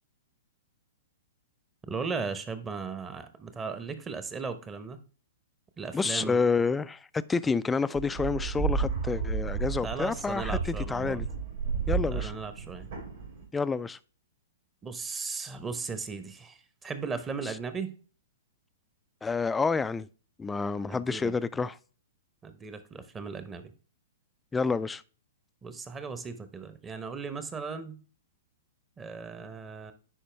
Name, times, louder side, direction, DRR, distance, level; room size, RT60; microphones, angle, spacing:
voice 1, 1.9-5.0 5.8-6.4 9.8-11.2 12.1-12.9 14.8-17.9 20.9-21.3 22.4-23.7 25.6-28.0 29.0-29.9, right 5 dB, 15° right, 0.9 m, -37 dB
voice 2, 5.9-11.3 11.9-12.3 13.5-14.0 19.2-20.1 20.4-21.8 24.5-25.0, left 4 dB, 10° left, 0.3 m, -29 dB
sound 1, 7.9-13.4, right 5 dB, 65° right, 3.9 m, -32 dB
10.0 x 4.3 x 3.3 m
hypercardioid pair, 115°, 0 cm